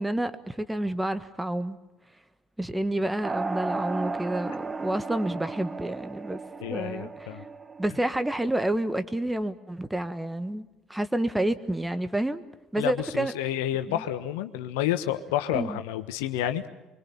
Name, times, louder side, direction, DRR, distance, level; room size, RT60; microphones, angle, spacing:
voice 1, 0.0-1.8 2.6-6.4 6.7-7.3 7.8-12.4 12.7-13.3 13.9-14.0 15.5-15.8, right 1 dB, 10° right, 12 dB, 1.5 m, -29 dB
sound 1, 3.2-8.4, right 3 dB, 25° right, 0.9 m, -35 dB
voice 2, 6.6-7.4 12.8-16.6, left 12 dB, 70° left, 9 dB, 1.2 m, -29 dB
25.0 x 25.0 x 5.7 m, 1.1 s
figure-of-eight pair, 60°, 0 cm